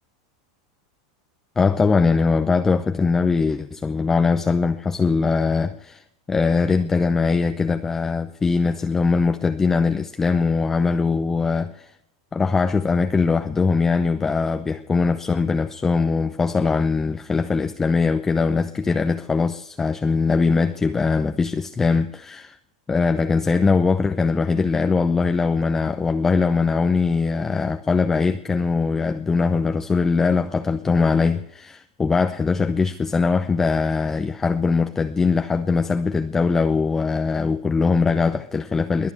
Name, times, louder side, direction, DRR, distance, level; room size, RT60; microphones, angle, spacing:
voice 1, 1.6-11.9 12.3-22.6 22.9-39.1, left 4 dB, 15° left, 0.6 m, -21 dB
22.0 x 7.7 x 8.3 m
supercardioid pair, 145°, 3 cm